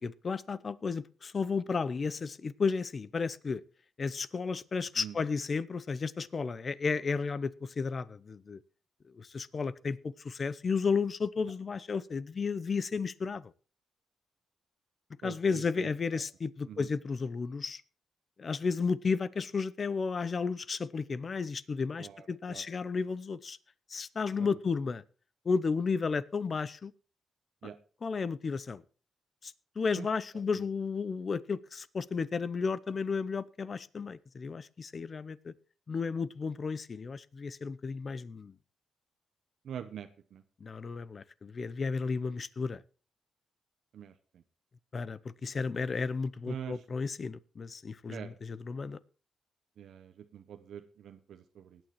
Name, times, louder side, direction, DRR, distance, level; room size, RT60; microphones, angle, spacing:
voice 1, 0.0-3.6 4.0-8.6 9.2-13.5 15.2-17.8 18.4-23.6 23.9-25.0 25.4-26.9 28.0-28.8 29.4-35.5 35.9-38.5 40.6-42.8 44.9-49.0, left 5 dB, 45° left, 0.7 m, -33 dB
voice 2, 15.2-16.2 16.6-16.9 22.0-22.6 24.4-24.5 27.6-27.8 30.0-30.1 30.5-30.6 39.6-40.4 43.9-44.4 46.5-46.8 48.1-48.4 49.8-51.8, right 8 dB, 75° right, 0.8 m, -45 dB
20.0 x 9.1 x 3.1 m
cardioid pair, 85°, 0 cm